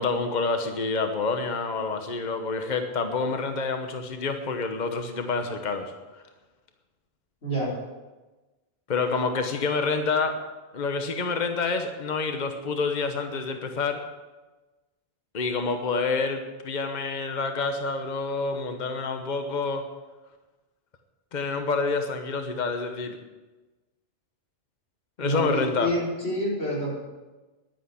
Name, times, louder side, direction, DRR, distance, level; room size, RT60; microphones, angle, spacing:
voice 1, 0.0-5.9 8.9-10.4 10.7-14.0 15.3-19.8 21.3-23.2 25.2-25.9, left 4 dB, 45° left, 6 dB, 1.2 m, -28 dB
voice 2, 7.4-7.7 25.2-26.9, equal, 85° left, -6 dB, 5.0 m, -27 dB
10.5 x 9.8 x 8.5 m, 1.2 s
omnidirectional pair, 1.1 m